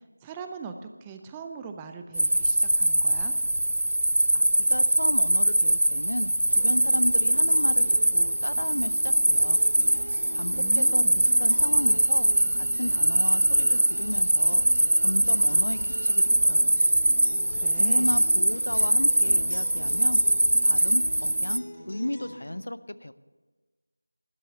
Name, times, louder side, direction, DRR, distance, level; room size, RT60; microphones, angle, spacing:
voice 1, 0.2-3.3 10.5-11.3 17.5-18.2, right 5 dB, 10° right, 6 dB, 0.4 m, -41 dB
sound 1, 2.1-21.6, right 1 dB, 90° right, 0.4 m, -22 dB
voice 2, 4.3-9.6 10.3-14.7 15.0-16.8 17.8-20.2 20.6-23.1, left 1 dB, 75° left, 15 dB, 0.6 m, -34 dB
Acoustic guitar, 6.5-22.5, equal, 45° left, 3.8 m, -43 dB
Bowed string instrument, 11.5-16.2, right 1 dB, 35° right, 5.3 m, -53 dB
12.5 x 9.9 x 6.8 m, 1.3 s
figure-of-eight pair, 175°, 0 cm